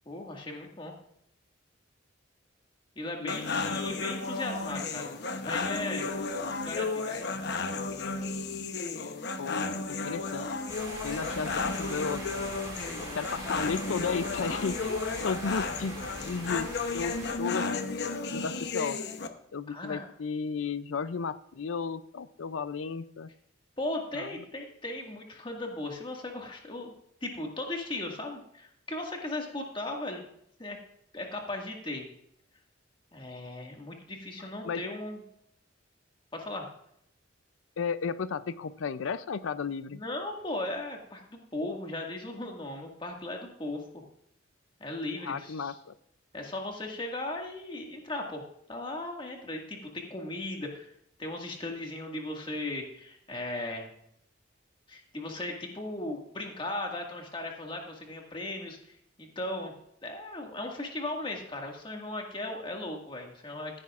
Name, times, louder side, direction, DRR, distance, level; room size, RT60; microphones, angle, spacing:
voice 1, 0.1-0.9 3.0-6.1 6.6-7.4 19.7-20.0 23.8-26.9 27.2-30.3 30.6-30.8 31.1-32.1 33.1-35.2 36.3-36.7 39.9-44.0 44.8-45.7 46.3-48.4 48.7-50.9 51.2-53.9 54.9-59.7 60.0-63.8, left 2 dB, 25° left, 1 dB, 1.9 m, -37 dB
voice 2, 3.2-3.9 9.4-10.5 11.0-12.2 13.1-15.0 15.2-16.0 16.2-16.7 16.9-17.6 18.3-19.0 19.5-23.3 24.2-24.3 34.6-34.8 37.8-40.0 45.2-45.9, left 5 dB, 85° left, 14 dB, 0.5 m, -34 dB
sound 1, 3.3-19.3, left 3 dB, 60° left, 0.9 m, -33 dB
sound 2, 10.7-17.3, right 1 dB, 20° right, 3.1 m, -42 dB
15.5 x 9.9 x 2.5 m, 0.72 s
head